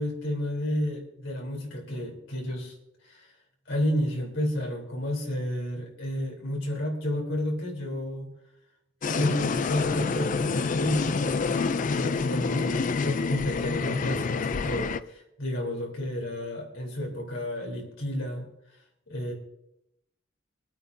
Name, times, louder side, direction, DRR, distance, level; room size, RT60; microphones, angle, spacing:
voice 1, 0.0-2.7 3.0-3.3 3.7-8.3 9.1-11.7 11.9-18.5 19.1-19.3, left 1 dB, 85° left, 0 dB, 3.7 m, -31 dB
sound 1, 9.0-15.0, left 4 dB, 40° left, 0.4 m, -27 dB
23.5 x 9.0 x 2.7 m, 0.81 s
head